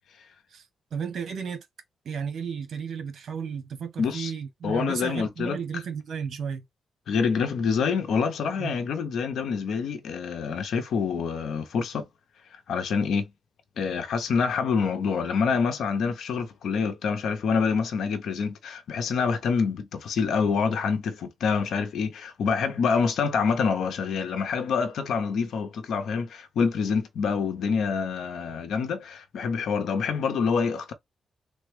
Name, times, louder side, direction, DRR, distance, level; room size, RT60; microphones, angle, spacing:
voice 1, 0.9-1.7 2.0-6.6 8.6-8.7, right 6 dB, 70° right, 1.0 m, -33 dB
voice 2, 4.0-4.3 4.6-5.6 7.1-12.0 12.7-13.3 13.8-30.9, left 5 dB, 80° left, 0.6 m, -26 dB
3.3 x 2.1 x 3.4 m
cardioid pair, 85°, 0 cm